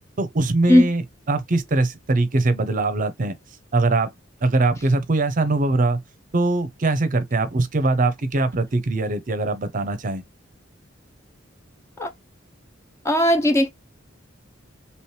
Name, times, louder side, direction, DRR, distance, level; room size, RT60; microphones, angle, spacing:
voice 1, 0.2-1.0 1.3-3.3 3.7-4.1 4.4-6.0 6.3-10.2, right 2 dB, 40° right, 0.6 m, -22 dB
voice 2, 13.0-13.7, left 1 dB, 15° left, 0.5 m, -16 dB
3.0 x 3.0 x 3.2 m
head